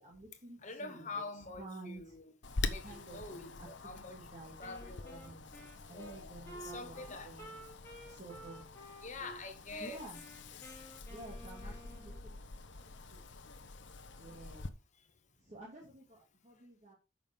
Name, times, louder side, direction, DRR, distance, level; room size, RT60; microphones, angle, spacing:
voice 1, 0.0-1.2 1.6-2.2 2.6-5.5 5.9-7.6 8.1-8.6 9.8-10.2 11.1-12.4 12.7-12.8 13.1-13.2 14.2-14.7 15.4-16.9, right 2 dB, 35° right, 2.2 m, -52 dB
voice 2, 0.6-2.2 2.7-4.3 4.6-5.3 5.5-5.7 5.9-6.2 6.5-7.3 9.0-10.0 11.6-11.8, left 3 dB, 35° left, 1.1 m, -46 dB
Wind, 2.4-14.7, left 3 dB, 60° left, 0.9 m, -45 dB
Wind instrument woodwind instrument, 4.6-9.4 9.7-12.3, right 1 dB, 15° left, 2.8 m, -53 dB
9.2 x 6.3 x 3.5 m
head